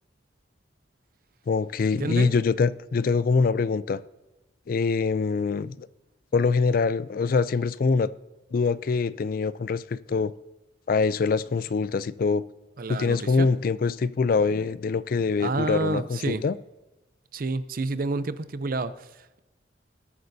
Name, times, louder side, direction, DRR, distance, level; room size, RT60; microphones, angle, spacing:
voice 1, 1.5-4.0 4.7-5.9 6.3-8.1 8.5-10.3 10.9-12.4 12.9-16.5, left 4 dB, 50° left, 17 dB, 0.3 m, -24 dB
voice 2, 2.0-2.3 12.8-13.5 15.4-16.4 17.3-19.4, right 3 dB, 50° right, 13 dB, 0.6 m, -29 dB
20.5 x 8.6 x 2.7 m, 1.1 s
head